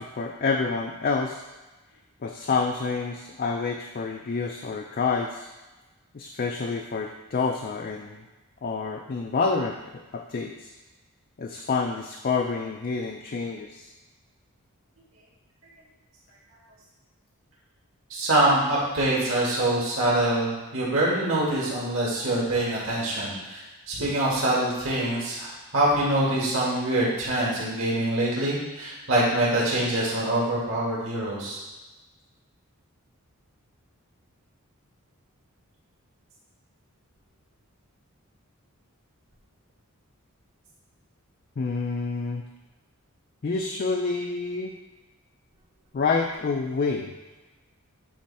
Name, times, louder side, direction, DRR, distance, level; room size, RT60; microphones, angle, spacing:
voice 1, 0.0-1.4 2.2-5.5 6.1-8.3 8.6-9.8 10.1-10.7 11.4-13.9 41.6-42.4 43.4-44.7 45.9-47.1, left 4 dB, 40° left, 2 dB, 0.4 m, -28 dB
voice 2, 18.1-23.6 23.9-31.6, right 1 dB, 65° right, -6 dB, 2.1 m, -24 dB
8.6 x 3.2 x 4.2 m, 1.2 s
head